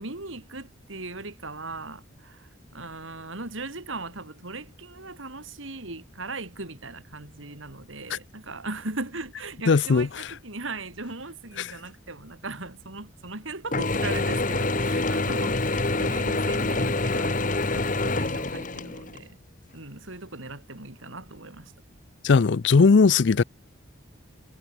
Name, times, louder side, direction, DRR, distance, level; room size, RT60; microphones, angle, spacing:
voice 1, 0.0-19.4 19.7-21.7, right 3 dB, 75° right, 3.9 m, -38 dB
voice 2, 9.7-10.3 11.6-11.7 22.2-23.4, left 4 dB, 60° left, 0.5 m, -18 dB
Mechanisms / Drill, 13.7-19.2, left 2 dB, 40° left, 1.6 m, -26 dB
head